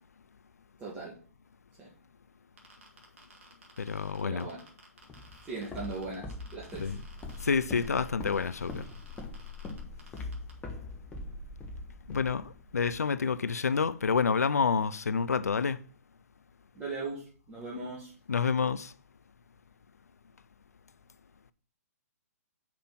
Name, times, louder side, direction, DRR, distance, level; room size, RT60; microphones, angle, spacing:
voice 1, 0.8-1.1 1.8-1.9 4.2-4.6 5.5-6.9 7.3-7.4 16.7-18.1, right 3 dB, 20° right, 2.3 m, -39 dB
sound 1, 2.6-10.5, right 3 dB, 50° right, 2.5 m, -56 dB
voice 2, 3.8-4.5 6.8-7.0 7.4-8.8 12.1-15.8 18.3-18.9, left 5 dB, 80° left, 0.4 m, -28 dB
Walk footsteps, 5.1-13.0, left 3 dB, 15° left, 1.4 m, -42 dB
6.0 x 5.0 x 6.0 m
figure-of-eight pair, 125°, 8 cm